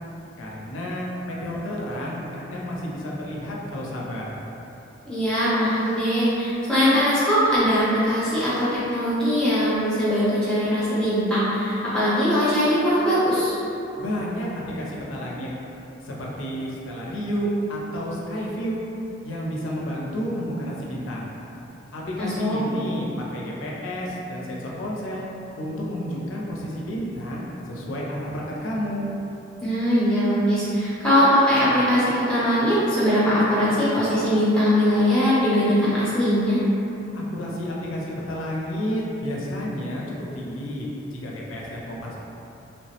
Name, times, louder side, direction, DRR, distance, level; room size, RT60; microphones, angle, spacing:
voice 1, 0.4-4.4 14.0-15.5 16.0-18.8 19.2-21.3 21.9-25.2 25.6-29.1 37.1-42.2, equal, 80° left, -4 dB, 0.5 m, -31 dB
voice 2, 5.1-13.6 22.2-22.6 29.6-36.6, equal, 5° left, -11 dB, 0.7 m, -21 dB
3.1 x 2.0 x 2.8 m, 3.0 s
head